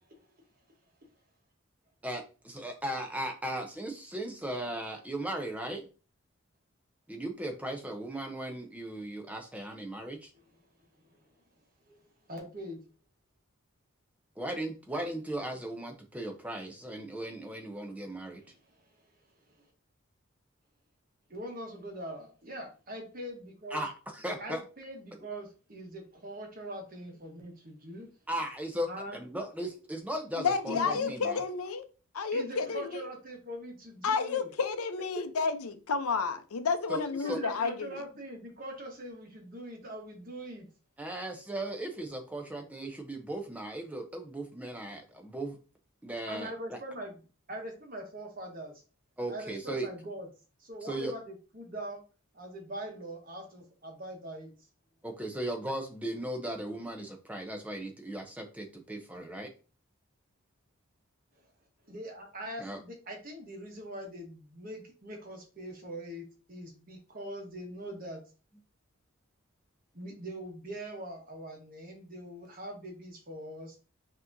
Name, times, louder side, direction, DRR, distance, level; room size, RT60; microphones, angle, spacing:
voice 1, 2.0-5.9 7.1-10.3 14.4-18.4 23.7-24.6 28.3-31.4 36.9-37.4 41.0-45.6 46.0-46.8 49.2-49.9 50.8-51.1 55.0-59.5 62.6-62.8, right 1 dB, 5° right, 0.6 m, -37 dB
voice 2, 12.3-12.8 18.4-18.8 19.0-19.1 19.6-19.7 21.3-23.8 24.4-28.1 28.9-29.2 30.7-31.1 32.3-34.5 35.1-35.2 36.9-40.7 46.3-47.2 47.5-48.8 49.3-50.3 50.6-52.0 52.3-54.5 61.9-68.2 69.9-73.8, right 1 dB, 40° right, 1.1 m, -42 dB
voice 3, 30.4-31.8 32.1-33.1 34.0-38.0, left 5 dB, 85° left, 0.6 m, -31 dB
5.9 x 2.9 x 2.6 m
head